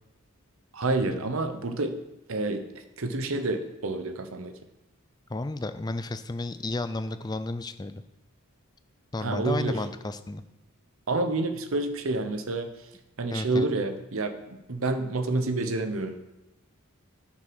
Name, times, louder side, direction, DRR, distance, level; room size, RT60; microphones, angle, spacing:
voice 1, 0.7-1.9 2.3-4.5 9.2-9.8 11.1-12.7 13.2-16.2, right 2 dB, 65° right, 9 dB, 0.9 m, -28 dB
voice 2, 5.3-8.0 9.1-10.4 13.3-13.7, left 2 dB, 20° left, 11 dB, 0.4 m, -32 dB
9.5 x 6.2 x 6.1 m, 0.95 s
head